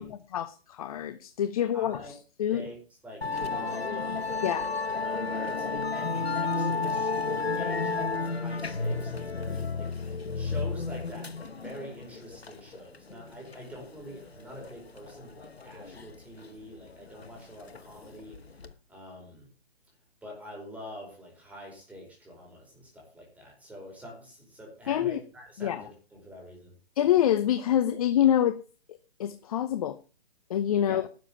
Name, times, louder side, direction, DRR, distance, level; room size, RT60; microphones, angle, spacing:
voice 1, 0.0-2.7 4.4-4.7 24.9-25.2 25.6-25.8 27.0-28.6 29.2-30.0 30.5-31.0, left 10 dB, 35° left, 12 dB, 0.8 m, -26 dB
voice 2, 1.6-2.1 2.5-2.8 3.0-4.3 4.9-19.5 20.2-26.7 30.9-31.0, equal, 5° right, -2 dB, 5.1 m, -45 dB
Musical instrument, 3.2-18.7, left 4 dB, 90° left, 1.2 m, -33 dB
12.5 x 7.3 x 7.1 m, 0.36 s
figure-of-eight pair, 140°, 30 cm